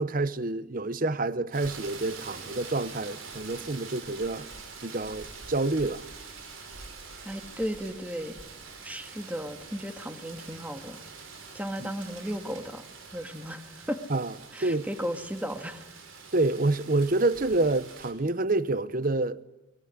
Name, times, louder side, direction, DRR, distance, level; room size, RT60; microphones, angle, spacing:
voice 1, 0.0-4.5 4.8-6.0 11.8-11.9 14.1-14.3 14.6-14.9 16.3-19.4, right 2 dB, 45° right, 0.9 m, -27 dB
Rain, 1.5-18.1, right 4 dB, 90° right, 5.7 m, -45 dB
voice 2, 7.2-8.4 8.8-11.0 11.5-12.8 13.1-14.0 14.5-15.9, equal, 10° right, 1.9 m, -35 dB
23.5 x 21.5 x 9.8 m
head